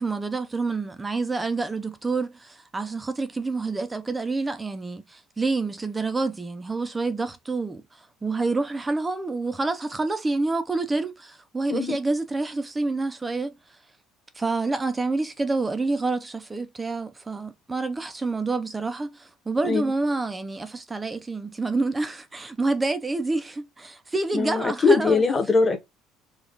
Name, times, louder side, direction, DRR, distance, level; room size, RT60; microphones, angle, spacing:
voice 1, 0.0-13.6 14.4-25.2, right 3 dB, 10° right, 0.5 m, -28 dB
voice 2, 24.3-25.8, left 4 dB, 20° left, 1.1 m, -21 dB
5.0 x 2.4 x 3.8 m
cardioid pair, 160°, 0 cm